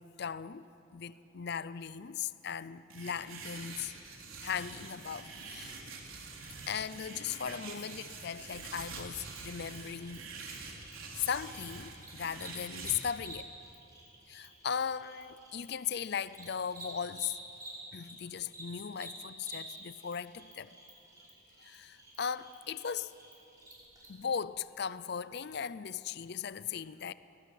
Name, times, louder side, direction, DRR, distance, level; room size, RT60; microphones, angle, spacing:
voice 1, 0.0-5.8 6.7-10.3 11.2-13.5 14.3-17.4 17.9-20.7 21.6-23.1 24.1-27.1, left 7 dB, 50° left, 0.5 m, -38 dB
sound 1, 2.9-13.0, right 4 dB, 80° right, 3.8 m, -46 dB
Cricket, 8.5-18.1 18.4-24.1, right 1 dB, 15° right, 5.9 m, -51 dB
22.0 x 19.5 x 9.2 m
head